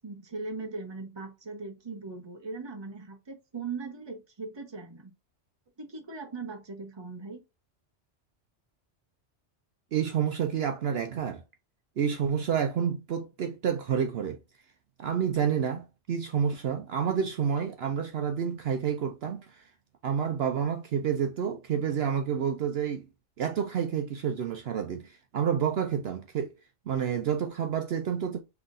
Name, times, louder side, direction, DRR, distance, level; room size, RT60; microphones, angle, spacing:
voice 1, 0.0-5.1 5.8-7.4, right 4 dB, 25° right, 0.9 m, -39 dB
voice 2, 9.9-11.4 12.0-14.4 15.0-19.6 20.0-23.1 23.4-26.5 26.9-28.4, right 7 dB, 65° right, 0.8 m, -29 dB
5.7 x 3.5 x 2.5 m
omnidirectional pair, 1.2 m